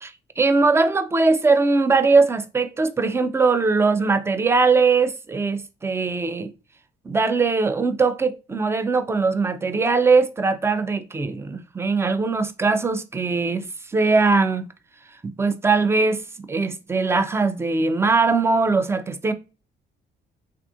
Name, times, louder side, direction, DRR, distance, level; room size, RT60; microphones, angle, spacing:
voice 1, 0.0-6.5 7.1-14.7 15.4-16.2 16.5-19.3, right 4 dB, 15° right, 0.3 m, -20 dB
3.4 x 2.4 x 2.5 m
cardioid pair, 90°, 20 cm